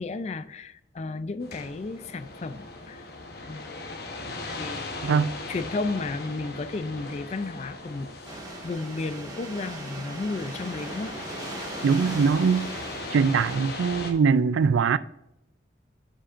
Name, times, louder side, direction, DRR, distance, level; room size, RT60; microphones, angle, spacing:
voice 1, 0.0-3.0 3.5-3.6 4.6-11.2, left 3 dB, 35° left, 0.3 m, -33 dB
sound 1, 1.4-14.1, left 3 dB, 55° left, 1.0 m, -39 dB
sound 2, 8.2-13.9, right 2 dB, 20° right, 1.1 m, -39 dB
voice 2, 11.8-12.7 13.1-15.0, right 5 dB, 85° right, 0.3 m, -22 dB
7.4 x 7.0 x 2.5 m
head